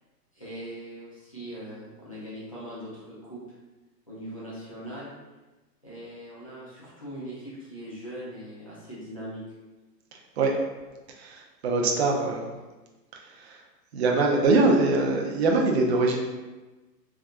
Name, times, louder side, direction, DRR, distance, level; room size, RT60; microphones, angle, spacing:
voice 1, 0.3-3.4 4.1-5.1 5.8-9.4, equal, 25° left, -10 dB, 0.3 m, -40 dB
voice 2, 11.2-12.5 13.4-13.6 13.9-16.2, right 3 dB, 45° right, 0 dB, 0.4 m, -23 dB
3.5 x 2.6 x 2.2 m, 1.2 s
hypercardioid pair, 150°, 50 cm